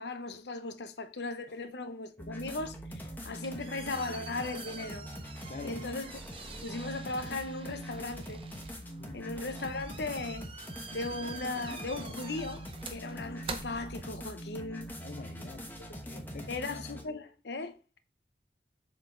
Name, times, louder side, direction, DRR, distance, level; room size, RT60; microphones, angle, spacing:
voice 1, 0.0-5.1 5.6-6.1 6.6-8.4 9.1-10.5 10.9-14.9 16.5-18.0, left 3 dB, 75° left, 0.8 m, -37 dB
sound 1, 2.2-17.0, equal, 10° left, 1.0 m, -43 dB
sound 2, 3.1-14.5, right 5 dB, 30° right, 0.6 m, -47 dB
voice 2, 5.5-5.8 9.0-9.4 15.0-15.7 16.0-16.6, left 3 dB, 45° left, 0.4 m, -45 dB
7.2 x 4.0 x 3.8 m
head